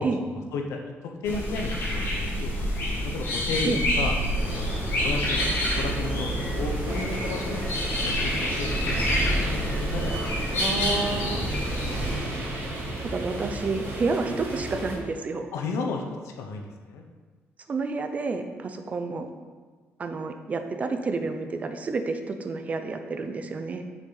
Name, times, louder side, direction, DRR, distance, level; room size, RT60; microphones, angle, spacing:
voice 1, 0.0-2.5 3.0-4.1 4.5-7.6 8.0-9.1 9.5-10.2 10.5-11.5 15.5-17.1, left 3 dB, 90° left, 3 dB, 0.9 m, -33 dB
sound 1, 1.2-12.1, left 1 dB, 55° left, 1.7 m, -28 dB
sound 2, 4.3-15.0, right 1 dB, 60° right, 2.0 m, -32 dB
voice 2, 10.6-11.5 13.0-15.5 17.7-19.3 20.0-23.8, right 4 dB, 30° right, 7 dB, 0.5 m, -30 dB
6.5 x 6.3 x 4.0 m, 1.5 s
cardioid pair, 155°, 5 cm